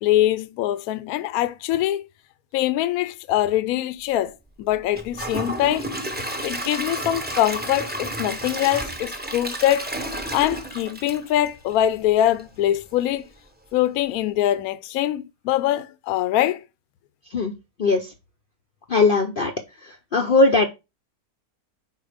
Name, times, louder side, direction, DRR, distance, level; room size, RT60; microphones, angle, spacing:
voice 1, 0.0-2.1 2.5-5.9 6.4-9.9 10.3-13.2 13.7-16.6, left 13 dB, 75° left, 1.0 m, -23 dB
Gurgling / Toilet flush / Trickle dribble, 4.9-12.0 12.4-12.5 13.0-13.1, right 1 dB, 10° right, 0.7 m, -31 dB
voice 2, 17.3-18.1 18.9-19.5 19.8-20.7, left 3 dB, 55° left, 0.6 m, -20 dB
4.7 x 4.5 x 4.9 m
omnidirectional pair, 1.7 m